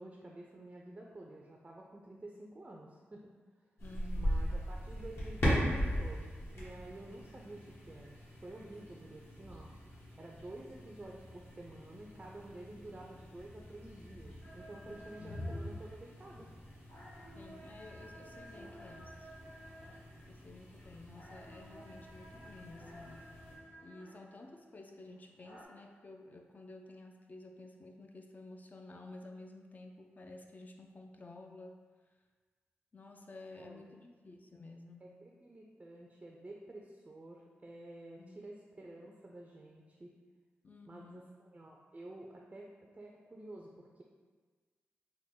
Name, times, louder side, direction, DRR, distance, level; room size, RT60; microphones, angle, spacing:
voice 1, 0.0-3.3 4.2-6.3 6.5-9.7 10.2-16.5 33.6-34.1 35.0-40.1 40.9-44.0, right 1 dB, 25° right, -1 dB, 0.4 m, -50 dB
sound 1, 3.8-23.6, equal, 60° left, 1.2 m, -40 dB
voice 2, 3.8-4.5 14.8-15.5 17.3-19.3 20.2-23.3 23.8-31.8 32.9-35.1 38.2-38.4 40.6-41.3, left 2 dB, 40° left, 3 dB, 0.4 m, -52 dB
sound 2, 14.4-25.7, equal, 85° left, 0.8 m, -55 dB
3.4 x 2.1 x 3.7 m, 1.4 s
cardioid pair, 70°, 5 cm